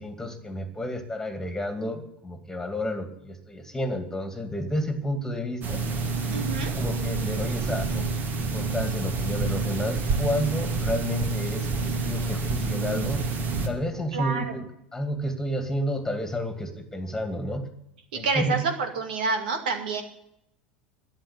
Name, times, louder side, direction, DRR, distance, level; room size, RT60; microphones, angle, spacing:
voice 1, 0.0-5.8 6.6-8.1 8.4-13.2 13.6-14.7 14.9-17.7 18.1-18.6, equal, 10° left, 8 dB, 2.4 m, -31 dB
sound 1, 5.6-13.7, right 3 dB, 40° right, 2.3 m, -28 dB
voice 2, 6.3-6.7 14.1-14.6 18.1-20.0, right 4 dB, 70° right, 5 dB, 2.3 m, -28 dB
13.0 x 10.0 x 8.4 m, 0.77 s
figure-of-eight pair, 80°, 5 cm